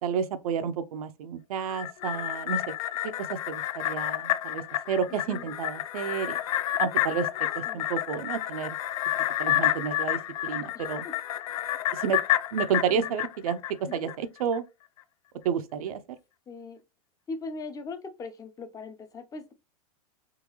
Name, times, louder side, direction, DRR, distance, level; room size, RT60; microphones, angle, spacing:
voice 1, 0.0-2.6 3.3-6.4 6.8-7.3 7.5-8.8 9.4-11.0 11.9-12.2 12.5-13.6 13.9-14.6 15.4-16.0, right 7 dB, 75° right, 0.6 m, -30 dB
sound 1, 1.6-14.2 14.5-14.6, left 13 dB, 65° left, 0.4 m, -30 dB
voice 2, 5.1-5.5 7.7-7.8 10.7-11.1 12.9-13.1 13.9-14.1 16.5-16.8 17.3-19.5, left 3 dB, 20° left, 0.7 m, -40 dB
3.8 x 3.1 x 3.0 m
hypercardioid pair, 120°, 19 cm